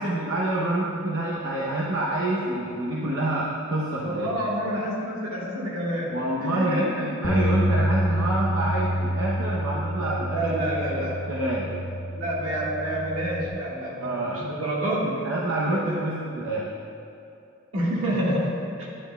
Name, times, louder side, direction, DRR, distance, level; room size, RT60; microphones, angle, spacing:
voice 1, 0.0-4.3 6.1-11.7 14.0-14.5 15.2-16.7, right 1 dB, 65° right, -5 dB, 0.7 m, -27 dB
voice 2, 4.0-7.0 10.3-11.5 12.1-15.3 15.7-16.0 17.7-18.9, right 1 dB, 85° right, -4 dB, 1.6 m, -28 dB
sound 1, 7.2-13.5, equal, 30° left, 0.8 m, -28 dB
9.6 x 8.9 x 2.2 m, 2.6 s
head